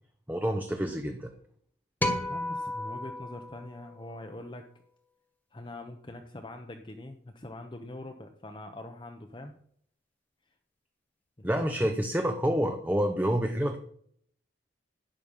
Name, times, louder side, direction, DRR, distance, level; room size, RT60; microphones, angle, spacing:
voice 1, 0.3-1.3 11.4-13.8, equal, 10° right, 5 dB, 0.9 m, -28 dB
Clean B harm, 2.0-4.5, left 1 dB, 10° left, 1.7 m, -34 dB
voice 2, 2.3-4.7 5.5-9.5 11.4-11.5, left 1 dB, 25° left, 5 dB, 0.9 m, -43 dB
11.5 x 8.9 x 5.5 m, 0.63 s
head